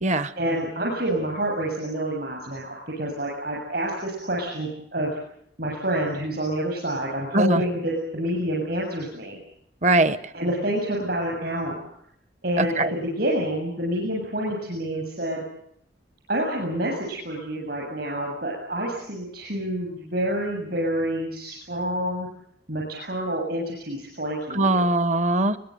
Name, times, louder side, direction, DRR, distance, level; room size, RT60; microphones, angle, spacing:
voice 1, 0.4-5.2 5.6-9.4 10.3-11.9 12.4-15.4 16.3-22.3 22.7-24.9, right 1 dB, 60° right, -2 dB, 7.4 m, -28 dB
voice 2, 9.8-10.2 12.6-12.9 24.6-25.6, right 2 dB, 40° right, 14 dB, 0.9 m, -20 dB
23.0 x 21.0 x 7.8 m, 0.71 s
head